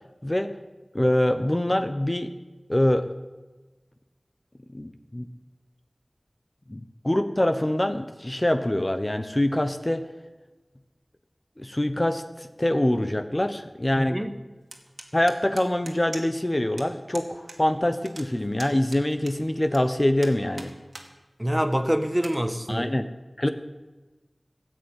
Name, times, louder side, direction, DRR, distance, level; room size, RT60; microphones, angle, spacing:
voice 1, 0.9-2.3 2.7-3.1 4.7-5.3 6.7-10.1 11.6-14.2 15.1-20.7 22.7-23.1 23.4-23.5, left 1 dB, 30° left, 0.9 m, -24 dB
voice 2, 14.0-14.3 21.4-22.9, equal, 15° right, 1.4 m, -25 dB
sound 1, 14.7-16.5 16.8-16.9 17.1-17.6 17.8-19.8 20.2-21.1 21.5-21.6 22.1-22.4, right 2 dB, 85° right, 2.2 m, -42 dB
16.0 x 8.0 x 9.8 m
wide cardioid pair, 45°, 0 cm